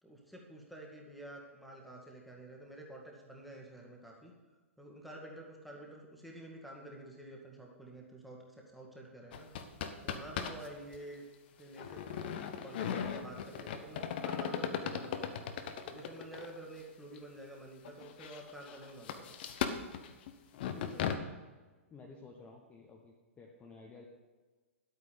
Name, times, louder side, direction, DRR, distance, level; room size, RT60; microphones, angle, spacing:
voice 1, 0.0-4.3 4.8-9.5 10.0-11.2 11.6-15.4 15.9-19.3, right 1 dB, ahead, -2 dB, 2.0 m, -49 dB
sound 1, 9.3-10.7 10.9-11.0 11.8-16.6 17.2-17.3 17.8-21.2, left 8 dB, 45° left, 1.0 m, -37 dB
voice 2, 20.7-21.2 21.9-24.0, left 4 dB, 15° left, 0 dB, 1.2 m, -53 dB
11.5 x 8.6 x 5.4 m, 1.3 s
figure-of-eight pair, 110°, 7 cm